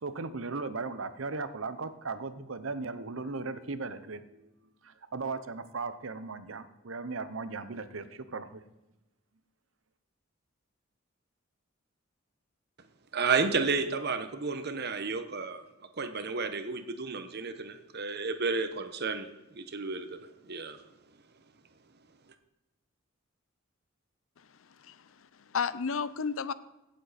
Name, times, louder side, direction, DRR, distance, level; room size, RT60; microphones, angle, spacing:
voice 1, 0.0-4.5 4.8-8.6, right 3 dB, 70° right, 12 dB, 0.9 m, -37 dB
voice 2, 13.1-15.6 16.0-19.3 19.5-20.2 20.4-20.8, right 4 dB, 55° right, 9 dB, 1.2 m, -31 dB
voice 3, 24.4-26.5, left 6 dB, 75° left, 16 dB, 0.6 m, -34 dB
17.0 x 7.6 x 4.2 m, 0.99 s
head